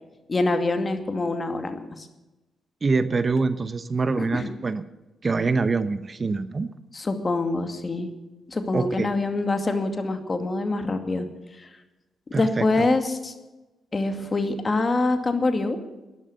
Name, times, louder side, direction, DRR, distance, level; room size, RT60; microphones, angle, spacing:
voice 1, 0.3-2.1 4.2-4.5 6.9-8.1 8.5-11.3 11.6-11.7 12.4-13.3 13.9-15.8, left 2 dB, 40° left, 7 dB, 2.3 m, -25 dB
voice 2, 2.8-4.8 5.2-6.7 8.7-9.1 12.3-12.9, right 4 dB, 40° right, 13 dB, 0.9 m, -25 dB
12.5 x 11.0 x 8.2 m, 1.1 s
supercardioid pair, 50°, 0 cm